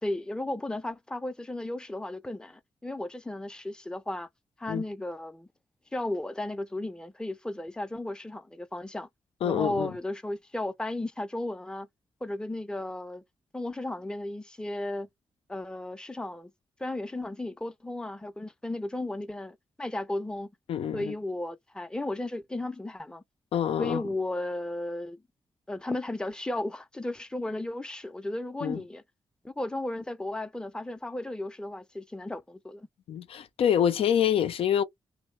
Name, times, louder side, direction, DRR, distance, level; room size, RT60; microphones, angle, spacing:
voice 1, 0.0-4.3 4.6-5.5 5.9-9.1 9.4-11.9 12.2-13.2 13.5-15.1 15.5-16.5 16.8-20.5 20.9-23.2 23.8-25.2 25.7-29.0 29.4-32.9, left 1 dB, 10° left, 0.5 m, -34 dB
voice 2, 9.4-9.9 20.7-21.1 23.5-24.0 28.6-28.8 33.1-34.8, left 9 dB, 80° left, 0.5 m, -26 dB
2.9 x 2.1 x 3.1 m
cardioid pair, 55°, 10 cm